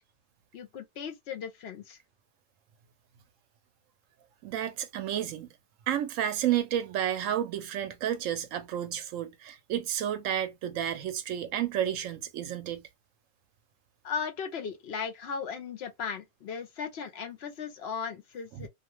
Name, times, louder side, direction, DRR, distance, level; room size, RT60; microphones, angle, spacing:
voice 1, 0.5-2.0 14.0-18.7, left 6 dB, 60° left, 0.8 m, -37 dB
voice 2, 4.4-5.5 5.9-12.9 18.5-18.7, right 10 dB, 85° right, 1.0 m, -31 dB
2.4 x 2.2 x 3.0 m
omnidirectional pair, 1.3 m